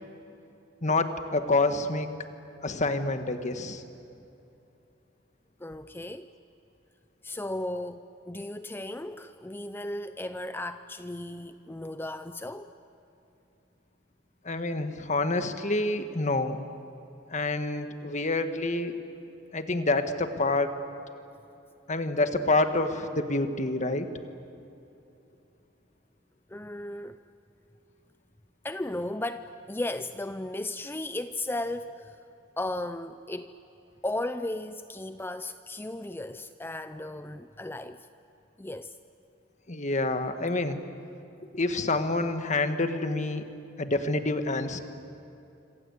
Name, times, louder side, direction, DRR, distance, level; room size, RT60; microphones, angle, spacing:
voice 1, 0.8-2.1 2.6-3.8 14.5-16.6 17.3-19.0 19.5-20.7 21.9-24.1 39.7-40.8 41.5-43.5 43.8-44.8, left 2 dB, 40° left, 1.6 m, -27 dB
voice 2, 5.6-6.3 7.2-12.7 26.5-27.2 28.6-32.2 32.6-33.5 34.0-38.1 38.6-39.0, left 1 dB, 10° left, 0.6 m, -35 dB
26.5 x 26.5 x 8.4 m
head